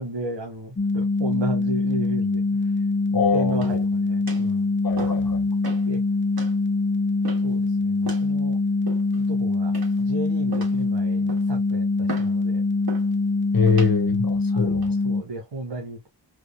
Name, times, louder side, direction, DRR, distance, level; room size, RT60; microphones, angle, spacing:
voice 1, 0.0-2.4 3.1-4.6 5.8-6.0 7.4-8.6 9.1-12.6 14.5-16.1, right 2 dB, 80° right, 1.9 m, -34 dB
sound 1, 0.8-15.2, left 3 dB, 25° left, 0.8 m, -23 dB
voice 2, 3.1-3.8 4.8-5.4 13.5-14.9, left 5 dB, 50° left, 1.5 m, -24 dB
sound 2, 3.5-3.9 4.3-4.5 5.0-5.3 5.6-5.9 6.4-6.6 7.2-7.6 8.0-8.3 8.9-9.3 9.7-10.1 10.5-10.9 11.3-11.6 12.1-12.4 12.9-13.1 13.7-13.9 14.6-14.9, right 4 dB, 55° right, 2.7 m, -36 dB
4.8 x 4.7 x 2.2 m
wide cardioid pair, 125°, 43 cm